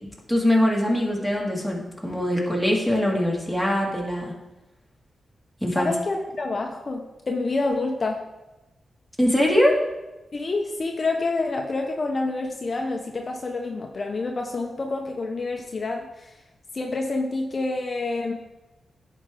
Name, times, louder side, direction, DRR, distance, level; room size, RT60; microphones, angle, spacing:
voice 1, 0.3-4.3 5.6-5.9 9.2-9.8, left 1 dB, ahead, -2 dB, 2.1 m, -22 dB
voice 2, 5.8-8.2 10.3-16.4 16.7-18.3, left 3 dB, 45° left, 2 dB, 0.8 m, -28 dB
10.5 x 4.6 x 3.8 m, 1.0 s
cardioid pair, 60°, 0 cm